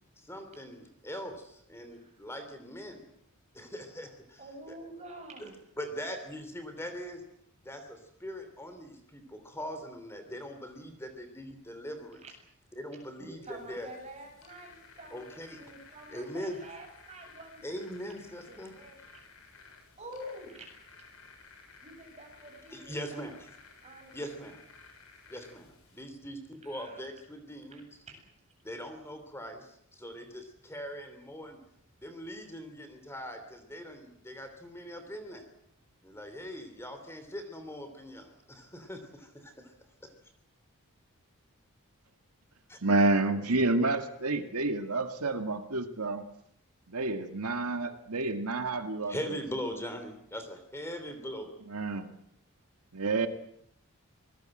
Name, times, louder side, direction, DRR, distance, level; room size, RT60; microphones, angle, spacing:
voice 1, 0.2-3.1 3.5-4.7 5.4-5.5 5.8-7.2 7.6-12.2 12.7-13.9 15.1-15.6 16.1-16.6 17.6-18.8 22.7-23.5 24.1-24.6 25.3-28.0 28.6-31.6 32.0-35.4 36.0-39.7 40.0-40.1 42.7-42.8 49.1-51.5, equal, 10° left, 8 dB, 3.0 m, -41 dB
voice 2, 4.4-5.5 12.2-12.3 13.2-17.6 18.5-19.0 20.0-20.7 21.8-23.3 23.8-24.4 26.6-27.0 27.7-28.2, right 1 dB, 30° right, 2 dB, 7.9 m, -48 dB
sound 1, 13.5-26.0, left 4 dB, 65° left, 7.1 m, -56 dB
voice 3, 42.8-46.3 46.9-49.4 51.7-52.1 52.9-53.3, right 2 dB, 85° right, 7 dB, 1.9 m, -29 dB
26.0 x 20.5 x 7.7 m, 0.70 s
head